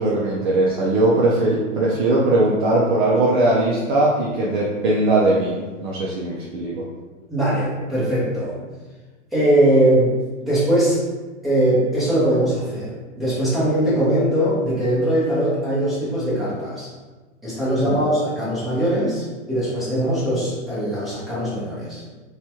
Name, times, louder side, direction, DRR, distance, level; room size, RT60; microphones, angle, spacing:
voice 1, 0.0-5.5 5.8-6.8 17.8-18.0, right 2 dB, 40° right, -5 dB, 0.4 m, -19 dB
voice 2, 7.3-8.5 9.3-10.2 10.4-11.0 11.4-12.9 13.2-16.9 17.4-22.0, right 1 dB, ahead, -11 dB, 0.8 m, -20 dB
2.9 x 2.3 x 2.8 m, 1.3 s
hypercardioid pair, 145°, 38 cm